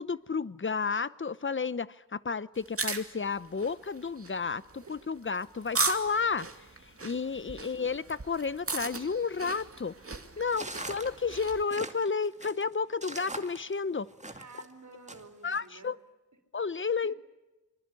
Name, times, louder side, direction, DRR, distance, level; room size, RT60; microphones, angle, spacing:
voice 1, 0.0-9.9 10.4-14.1 15.4-16.0 16.5-17.1, left 5 dB, 35° left, 17 dB, 0.9 m, -32 dB
sound 1, 2.6-11.6, right 3 dB, 40° right, 2.4 m, -37 dB
voice 2, 7.5-7.9 10.5-10.8 14.4-15.9 17.0-17.1, right 4 dB, 60° right, 6 dB, 4.3 m, -51 dB
sound 2, 10.5-14.7 15.1-15.6, right 2 dB, 20° right, 2.2 m, -42 dB
25.0 x 24.5 x 8.4 m, 1.1 s
wide cardioid pair, 70°, 34 cm